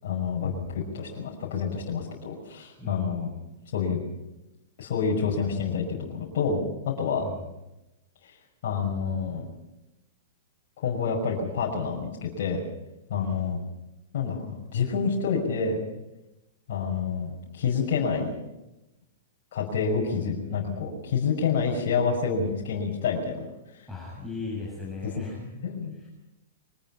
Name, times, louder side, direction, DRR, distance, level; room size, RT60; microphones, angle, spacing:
voice 1, 0.0-3.3 3.7-4.0 4.8-6.6 6.8-7.2 8.2-8.3 8.6-9.4 10.8-12.6 13.1-13.6 14.1-15.8 16.7-18.3 19.5-23.4 23.7-23.9 25.6-26.1, left 5 dB, 60° left, -4 dB, 6.0 m, -28 dB
voice 2, 2.8-3.4 7.2-7.4 13.1-13.6 20.0-20.8 23.9-26.1, left 3 dB, ahead, -4 dB, 7.2 m, -39 dB
24.0 x 20.0 x 5.7 m, 0.94 s
hypercardioid pair, 110°, 0 cm